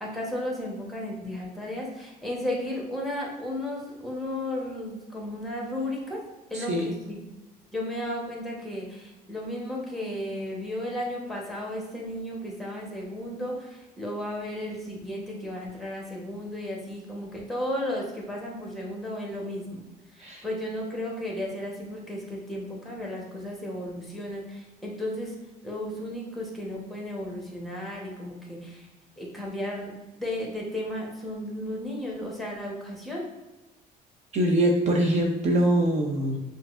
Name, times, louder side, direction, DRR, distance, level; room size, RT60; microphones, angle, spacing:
voice 1, 0.0-6.2 6.5-7.2 7.7-19.8 20.1-25.3 25.6-28.9 29.2-29.9 30.2-33.2, left 1 dB, ahead, -2 dB, 1.0 m, -34 dB
voice 2, 6.5-6.9 20.2-20.4 34.3-36.4, right 1 dB, 40° right, 1 dB, 0.5 m, -23 dB
5.7 x 2.5 x 2.4 m, 1.1 s
cardioid pair, 110°, 17 cm